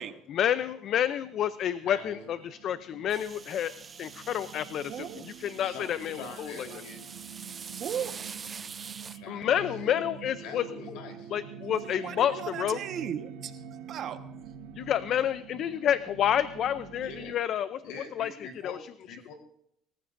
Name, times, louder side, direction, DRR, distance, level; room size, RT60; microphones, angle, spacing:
voice 1, 0.3-3.7 4.0-6.7 9.3-10.6 11.3-12.8 14.7-17.8 18.1-18.4 18.6-18.8, left 10 dB, 50° left, 14 dB, 0.5 m, -29 dB
voice 2, 1.8-2.3 5.6-7.0 9.1-9.9 10.4-11.3 17.0-17.4 17.8-19.3, left 4 dB, 80° left, 4 dB, 3.7 m, -44 dB
sound 1, 2.2-17.3, right 8 dB, 85° right, 1.1 m, -46 dB
sound 2, 3.1-9.2, right 6 dB, 25° right, 0.4 m, -45 dB
voice 3, 4.9-5.2 6.2-6.3 6.7-6.8 7.7-8.2 11.8-13.6 13.9-14.2, right 9 dB, 50° right, 8 dB, 1.3 m, -36 dB
24.0 x 14.5 x 2.6 m, 0.73 s
cardioid pair, 125°, 0 cm